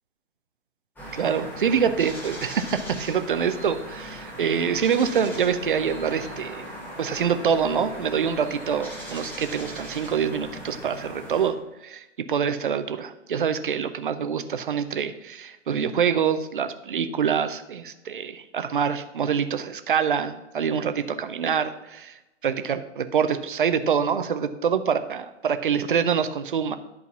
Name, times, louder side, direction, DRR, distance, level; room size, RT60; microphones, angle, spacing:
sound 1, 1.0-11.5, equal, 5° left, 1.3 m, -39 dB
voice 1, 1.1-6.6 7.0-11.6 11.8-22.2 22.4-26.8, right 7 dB, 45° right, 10 dB, 0.7 m, -25 dB
11.0 x 4.0 x 5.7 m, 1.0 s
figure-of-eight pair, 130°, 36 cm